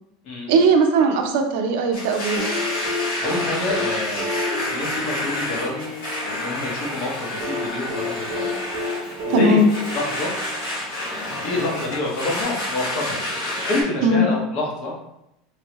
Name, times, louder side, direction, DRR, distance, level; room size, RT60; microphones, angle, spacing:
voice 1, 0.5-2.5 9.3-9.7 14.0-14.2, right 2 dB, 65° right, 3 dB, 0.5 m, -18 dB
Domestic sounds home sounds, 1.9-13.8, left 1 dB, 75° left, 1.3 m, -29 dB
sound 1, 2.4-6.4 7.4-11.0 12.4-12.5, left 2 dB, 30° right, 0.8 m, -30 dB
voice 2, 3.2-4.3 4.7-5.9 6.2-8.6 8.8-9.6 9.9-10.3 11.1-13.4 13.7-14.9, left 2 dB, 45° left, -2 dB, 0.9 m, -27 dB
3.1 x 2.7 x 2.9 m, 0.83 s
supercardioid pair, 170°, 0 cm